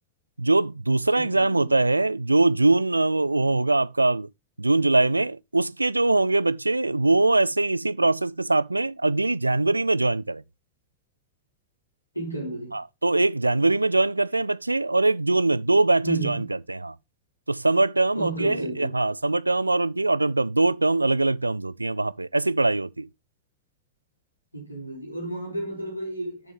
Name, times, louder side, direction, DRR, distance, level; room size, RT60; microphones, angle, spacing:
voice 1, 0.4-4.3 4.6-10.4 12.7-17.0 17.5-23.1, right 2 dB, 85° right, 0.3 m, -22 dB
voice 2, 1.2-1.8 12.1-12.8 16.0-16.5 18.1-19.0 24.5-26.5, right 2 dB, 90° left, 3.5 m, -33 dB
6.8 x 6.3 x 3.7 m
figure-of-eight pair, 90°, 0 cm